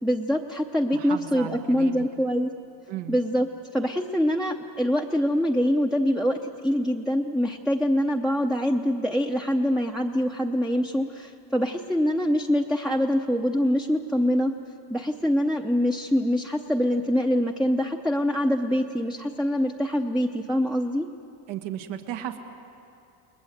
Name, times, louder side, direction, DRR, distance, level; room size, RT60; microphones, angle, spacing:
voice 1, 0.0-2.5 3.1-14.5 14.9-21.1, equal, ahead, 1 dB, 0.7 m, -24 dB
voice 2, 0.9-2.0 2.9-3.2 21.5-22.4, right 11 dB, 85° right, 3 dB, 2.1 m, -34 dB
30.0 x 21.0 x 7.9 m, 2.7 s
cardioid pair, 160°, 44 cm